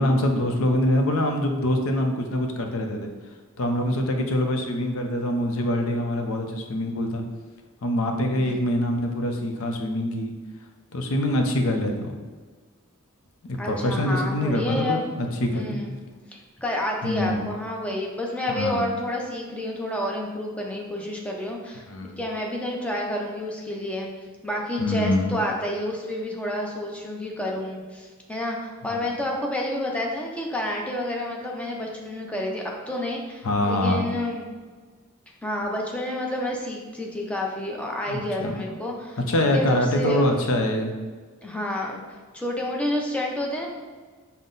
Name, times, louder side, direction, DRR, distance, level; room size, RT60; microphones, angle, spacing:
voice 1, 0.0-3.1 3.6-7.2 7.8-10.3 10.9-12.1 13.4-16.0 17.0-17.5 18.5-18.8 21.9-22.2 24.8-25.4 28.8-29.0 33.4-34.1 38.1-38.6 39.3-40.9, left 1 dB, 70° left, 4 dB, 0.6 m, -24 dB
voice 2, 8.3-8.6 13.6-15.1 15.5-15.9 16.3-21.8 22.2-24.1 24.4-34.4 35.4-39.2 39.5-40.2 41.4-42.0 42.3-43.7, left 1 dB, 5° left, -1 dB, 0.6 m, -29 dB
5.6 x 2.1 x 3.9 m, 1.5 s
head